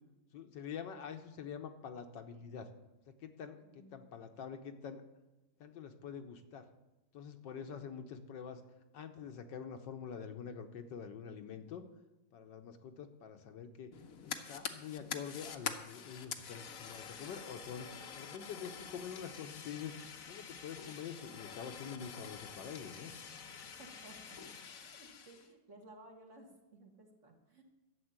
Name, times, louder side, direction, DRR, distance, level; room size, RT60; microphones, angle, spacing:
voice 1, 0.3-2.7 3.1-5.0 5.6-6.7 7.1-8.6 8.9-11.8 12.3-13.9 14.2-17.9 18.1-23.1, left 7 dB, 75° left, 7 dB, 1.6 m, -46 dB
voice 2, 3.6-4.0 7.5-8.0 23.8-27.6, right 1 dB, 40° right, 1 dB, 2.2 m, -58 dB
Fire, 13.9-25.5, left 7 dB, 55° left, 1.2 m, -47 dB
12.5 x 7.3 x 8.8 m, 1.0 s
omnidirectional pair, 2.0 m